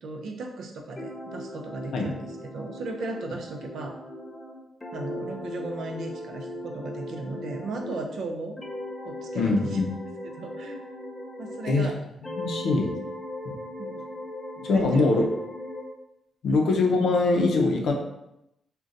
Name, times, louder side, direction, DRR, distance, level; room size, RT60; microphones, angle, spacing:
voice 1, 0.0-4.0 4.9-8.6 9.0-9.8 10.2-10.8 11.4-12.0 13.8-14.1 14.6-15.1 16.5-16.6, right 2 dB, 60° right, 3 dB, 0.4 m, -36 dB
sound 1, 1.0-8.2 8.6-11.9 12.2-15.9, left 1 dB, 10° left, 0.3 m, -38 dB
voice 2, 9.4-9.9 11.7-11.9 12.4-12.9 13.4-13.6 14.6-15.3 16.4-17.9, left 3 dB, 70° left, 1 dB, 0.5 m, -22 dB
3.8 x 2.2 x 2.5 m, 0.86 s
wide cardioid pair, 170°, 0 cm